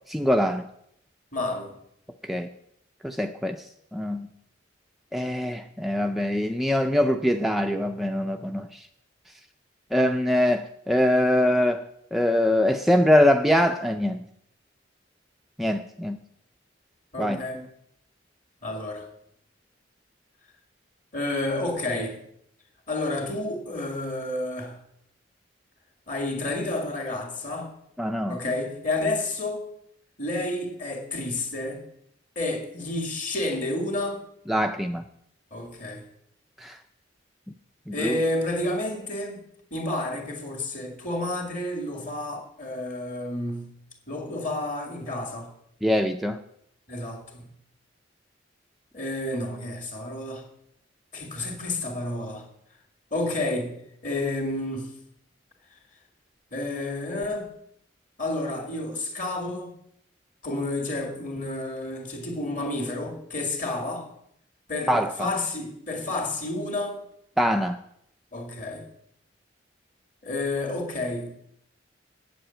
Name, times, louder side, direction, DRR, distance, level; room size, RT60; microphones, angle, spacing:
voice 1, 0.1-0.6 2.2-2.5 3.0-3.6 3.9-4.3 5.1-8.8 9.9-11.8 12.1-14.2 15.6-16.2 17.2-17.6 28.0-28.4 34.5-35.0 36.6-36.8 37.9-38.2 45.8-46.4 64.9-65.3 67.4-67.8, left 1 dB, ahead, 0.4 m, -23 dB
voice 2, 1.3-1.8 17.1-17.6 18.6-19.1 21.1-22.2 22.9-24.8 26.1-27.7 28.3-29.6 30.2-31.8 32.4-34.2 35.5-36.0 37.9-39.4 39.7-43.7 44.1-45.5 46.9-47.4 48.9-50.4 51.1-52.5 53.1-54.9 56.5-57.5 58.2-59.7 60.4-64.1 64.7-67.0 68.3-68.9 70.2-71.4, left 2 dB, 45° left, 2.4 m, -30 dB
8.0 x 7.7 x 8.7 m
head